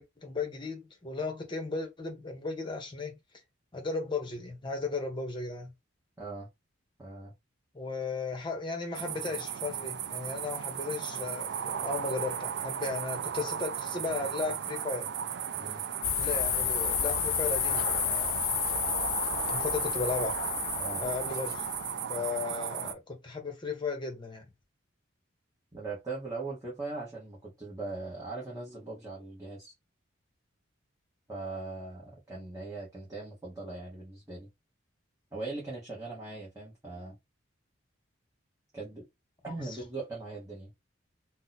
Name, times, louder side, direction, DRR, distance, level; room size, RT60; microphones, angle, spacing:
voice 1, 0.0-3.2 3.7-5.7 7.7-15.1 16.2-18.4 19.5-20.4 21.0-21.6 22.1-24.5, left 4 dB, 25° left, 0.8 m, -35 dB
voice 2, 6.2-6.5 7.0-7.3 15.5-15.8 20.8-21.0 25.7-29.7 31.3-34.5 35.3-37.2 38.7-39.0 39.4-40.7, right 3 dB, 15° right, 0.9 m, -40 dB
sound 1, 8.9-22.9, right 8 dB, 55° right, 0.3 m, -35 dB
sound 2, 16.0-21.9, left 12 dB, 80° left, 0.4 m, -31 dB
2.7 x 2.1 x 4.0 m
head